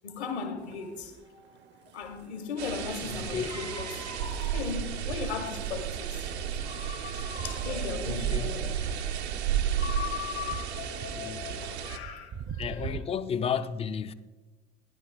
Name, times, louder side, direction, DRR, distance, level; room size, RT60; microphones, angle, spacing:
voice 1, 0.0-6.3 6.6-8.9 9.8-12.9, left 6 dB, 75° left, 1.5 m, -38 dB
sound 1, 0.6-13.0, right 7 dB, 35° right, 0.6 m, -45 dB
sound 2, 2.6-12.0, right 9 dB, 75° right, 0.8 m, -33 dB
voice 2, 3.0-3.5 7.1-7.2 8.0-8.6 11.1-11.7 12.6-14.1, left 7 dB, 20° left, 0.4 m, -33 dB
16.5 x 10.5 x 2.3 m
figure-of-eight pair, 65°, 33 cm